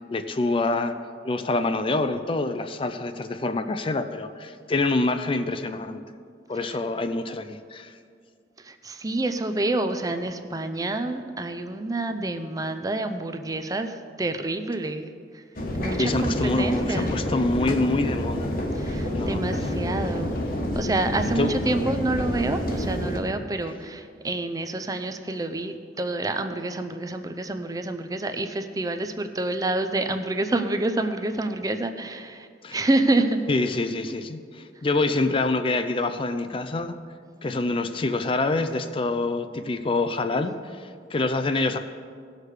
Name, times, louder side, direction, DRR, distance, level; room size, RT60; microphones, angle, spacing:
voice 1, 0.1-0.9 1.2-6.0 6.5-7.9 16.0-18.5 19.1-19.4 21.2-21.5 32.6-32.8 33.5-37.0 37.4-41.8, left 2 dB, 30° left, 9 dB, 0.5 m, -26 dB
voice 2, 8.6-15.4 15.8-17.2 18.8-20.4 20.7-33.4, right 2 dB, 20° right, 8 dB, 0.5 m, -28 dB
sound 1, 15.6-23.2, equal, 55° left, 1.4 m, -28 dB
17.0 x 6.6 x 4.9 m, 2.1 s
head